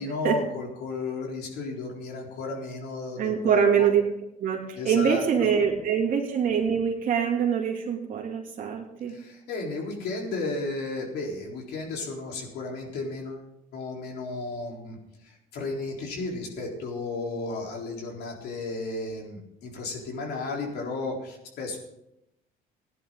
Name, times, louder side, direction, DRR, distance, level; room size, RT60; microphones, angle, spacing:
voice 1, 0.0-3.9 4.8-5.5 9.1-13.5 13.7-15.0 15.2-21.8, left 3 dB, 75° left, 0 dB, 3.9 m, -34 dB
voice 2, 3.2-4.0 4.4-9.1, right 7 dB, 55° right, -1 dB, 2.5 m, -24 dB
17.0 x 10.5 x 3.9 m, 0.83 s
cardioid pair, 110°, 17 cm